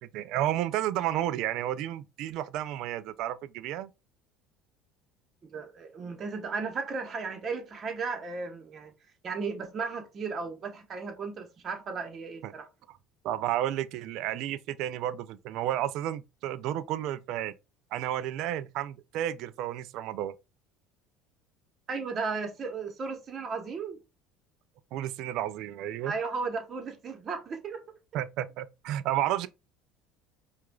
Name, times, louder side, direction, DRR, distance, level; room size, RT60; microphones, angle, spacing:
voice 1, 0.1-3.9 12.4-12.5 13.2-17.5 17.9-20.3 24.9-26.1 28.1-29.5, right 12 dB, 65° right, 0.3 m, -31 dB
voice 2, 5.5-8.9 9.2-12.7 21.9-24.0 26.0-27.8, right 4 dB, 40° right, 1.1 m, -35 dB
4.7 x 2.4 x 2.3 m
supercardioid pair, 95°, 0 cm